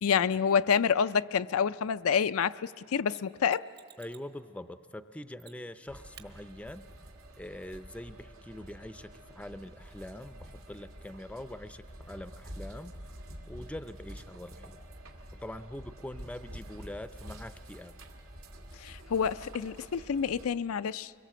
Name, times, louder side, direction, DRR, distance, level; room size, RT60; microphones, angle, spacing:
voice 1, 0.0-3.6 18.8-21.1, left 7 dB, 85° left, 13 dB, 0.4 m, -28 dB
Mechanisms, 3.1-4.3 5.4-5.8 6.1-6.3 9.1-9.2, right 9 dB, 50° right, 1.4 m, -54 dB
voice 2, 4.0-6.8 7.4-14.8 15.4-17.9, left 1 dB, 5° left, 11 dB, 0.5 m, -44 dB
sound 1, 5.9-20.5, right 1 dB, 85° right, 2.0 m, -48 dB
24.5 x 22.0 x 7.6 m, 2.9 s
head